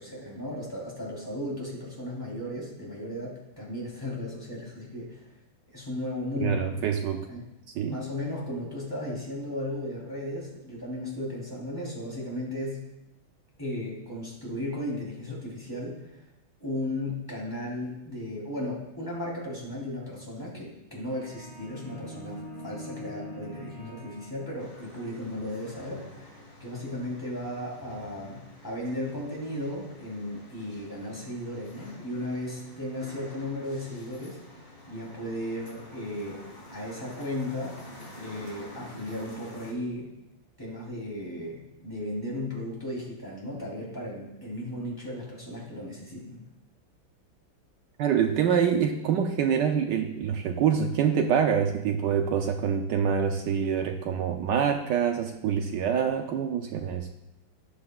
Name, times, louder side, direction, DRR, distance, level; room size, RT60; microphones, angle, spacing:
voice 1, 0.0-5.3 5.7-6.7 7.3-7.4 7.8-12.8 13.6-16.2 16.6-34.4 34.9-36.4 36.7-37.8 38.2-40.1 40.6-46.4, left 1 dB, 10° left, -5 dB, 3.1 m, -35 dB
voice 2, 6.4-7.3 7.8-8.0 48.0-57.1, right 7 dB, 75° right, 5 dB, 1.1 m, -26 dB
sound 1, 21.0-25.0, equal, 45° right, 3.9 m, -44 dB
sound 2, 24.6-39.7, left 1 dB, 30° left, 1.7 m, -48 dB
13.5 x 9.3 x 2.3 m, 0.90 s
omnidirectional pair, 2.1 m